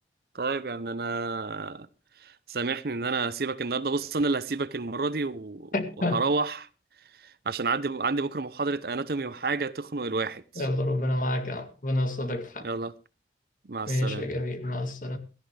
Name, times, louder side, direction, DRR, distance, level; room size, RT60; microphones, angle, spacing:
voice 1, 0.3-1.9 2.2-5.7 6.1-6.7 7.5-10.7 12.6-12.9 13.7-14.3, right 3 dB, 55° right, 0.7 m, -30 dB
voice 2, 5.7-6.2 10.6-12.7 13.9-15.2, left 1 dB, 45° left, 2.0 m, -29 dB
17.0 x 14.0 x 3.3 m
head